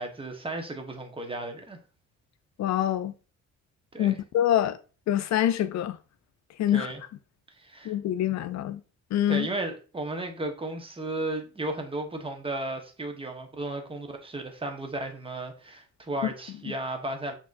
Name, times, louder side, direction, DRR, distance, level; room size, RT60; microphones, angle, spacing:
voice 1, 0.0-1.8 3.9-4.2 6.7-7.0 7.6-7.9 9.3-17.3, right 2 dB, 20° right, 1.0 m, -34 dB
voice 2, 2.6-3.1 4.0-4.8 5.1-6.0 6.6-6.9 7.8-8.8 9.1-9.5 16.2-16.3, left 11 dB, 65° left, 0.5 m, -25 dB
6.0 x 2.9 x 2.5 m
cardioid pair, 90°, 30 cm